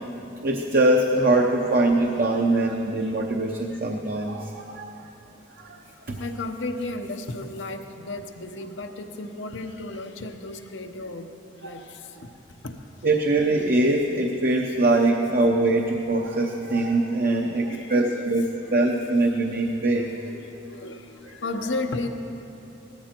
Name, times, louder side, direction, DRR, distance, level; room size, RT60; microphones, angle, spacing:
voice 1, 0.4-4.9 5.6-5.8 6.1-6.2 13.0-20.0, right 2 dB, 50° right, 1 dB, 0.8 m, -22 dB
voice 2, 6.2-11.3 11.6-12.3 12.6-12.8 15.2-15.5 17.2-18.9 19.3-19.4 19.9-22.1, left 2 dB, 75° left, 5 dB, 0.9 m, -34 dB
18.0 x 14.0 x 4.5 m, 2.9 s
head